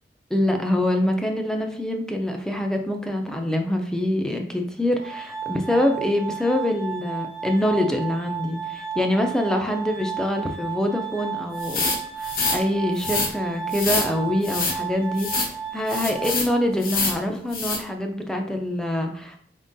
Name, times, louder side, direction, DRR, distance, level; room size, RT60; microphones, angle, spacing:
voice 1, 0.3-11.8 12.2-19.4, left 1 dB, 5° left, 3 dB, 0.4 m, -25 dB
Glass, 4.9-16.9, right 7 dB, 85° left, 1.3 m, -33 dB
sound 1, 11.6-12.6 13.0-13.3 13.7-14.1 14.4-14.8 15.2-15.5 15.9-16.5 16.8-17.2 17.5-17.8, left 4 dB, 55° left, 0.9 m, -26 dB
4.4 x 3.7 x 2.6 m, 0.64 s
head